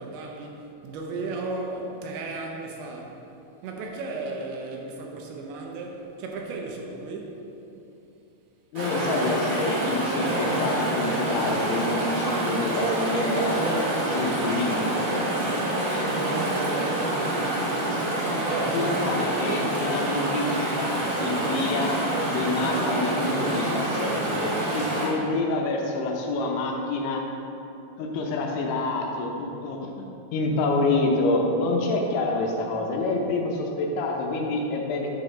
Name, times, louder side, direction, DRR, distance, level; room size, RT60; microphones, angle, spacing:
voice 1, 0.0-3.2 3.6-7.5 16.3-18.2 18.4-19.7 20.9-21.1, right 3 dB, 80° right, 1 dB, 2.4 m, -35 dB
voice 2, 8.7-13.6 14.1-14.9 18.7-22.0 22.3-27.2 28.0-35.1, left 2 dB, 85° left, 1 dB, 2.8 m, -27 dB
Chatter / Stream, 8.7-25.1, right 1 dB, 60° right, 1.3 m, -26 dB
7.6 x 4.0 x 5.0 m, 2.9 s
omnidirectional pair, 4.7 m